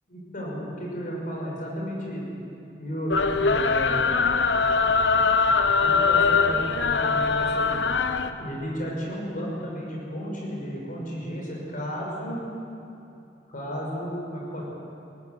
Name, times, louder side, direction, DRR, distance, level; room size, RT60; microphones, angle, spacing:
voice 1, 0.1-2.2 2.8-4.1 5.8-7.7 8.4-12.4 13.5-14.6, equal, 50° left, -2 dB, 6.0 m, -33 dB
sound 1, 3.1-8.3, left 4 dB, 75° left, 0.9 m, -22 dB
18.0 x 15.5 x 9.5 m, 2.7 s
head